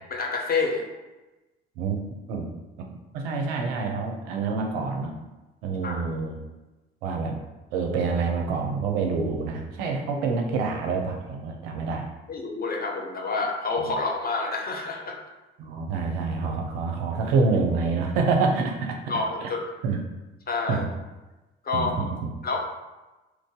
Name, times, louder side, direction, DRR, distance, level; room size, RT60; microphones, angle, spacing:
voice 1, 0.1-0.8 5.8-6.0 12.3-15.2 19.1-19.6 20.5-20.8 21.6-21.9 22.4-22.6, left 3 dB, 30° left, 1 dB, 0.7 m, -28 dB
voice 2, 3.1-5.1 5.6-6.4 7.0-7.4 7.7-12.1 13.8-13.9 15.6-19.5 19.8-20.0 20.7-20.9 21.7-22.3, right 4 dB, 75° right, 2 dB, 0.6 m, -27 dB
2.9 x 2.6 x 3.6 m, 1.1 s
hypercardioid pair, 55°, 30 cm